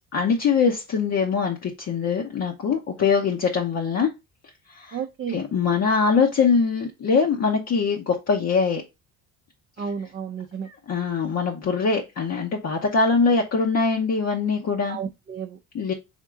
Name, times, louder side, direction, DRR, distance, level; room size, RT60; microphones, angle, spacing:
voice 1, 0.1-4.1 4.7-5.0 5.3-8.8 10.6-15.0 15.7-15.9, left 5 dB, 45° left, 0.9 m, -22 dB
voice 2, 4.9-5.4 9.8-10.7 14.9-15.6, right 7 dB, 35° right, 0.5 m, -32 dB
3.7 x 3.6 x 3.6 m
cardioid pair, 100°, 35 cm